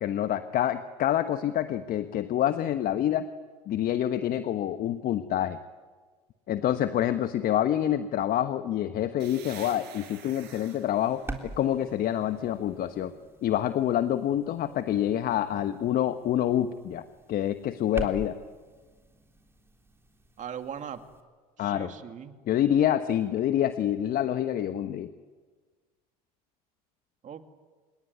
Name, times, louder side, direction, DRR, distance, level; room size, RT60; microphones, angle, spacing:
voice 1, 0.0-3.2 3.7-5.6 6.5-13.1 13.4-17.0 17.3-18.4 21.6-21.9 22.5-25.1, left 11 dB, 50° left, 10 dB, 1.3 m, -27 dB
sound 1, 9.2-12.8, right 9 dB, 60° right, 6.5 m, -50 dB
sound 2, 11.0-21.2, right 3 dB, 15° right, 3.8 m, -45 dB
voice 2, 20.4-21.0 21.6-22.3 27.2-27.4, right 8 dB, 40° right, 7 dB, 2.5 m, -39 dB
26.5 x 21.0 x 9.7 m, 1.5 s
hypercardioid pair, 80°, 19 cm